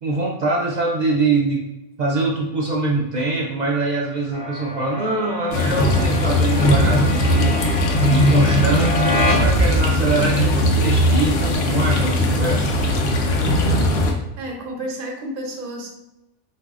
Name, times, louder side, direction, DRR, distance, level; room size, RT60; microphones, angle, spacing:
voice 1, 0.0-1.7 2.0-7.6 8.0-12.8, right 3 dB, 75° right, -2 dB, 0.4 m, -23 dB
sound 1, 4.3-10.2, left 1 dB, 40° left, 0.4 m, -26 dB
sound 2, 5.5-14.1, left 1 dB, 85° left, 1.0 m, -19 dB
voice 2, 13.6-15.9, right 1 dB, 55° right, 1 dB, 0.7 m, -31 dB
3.9 x 2.6 x 2.4 m, 0.95 s
omnidirectional pair, 1.3 m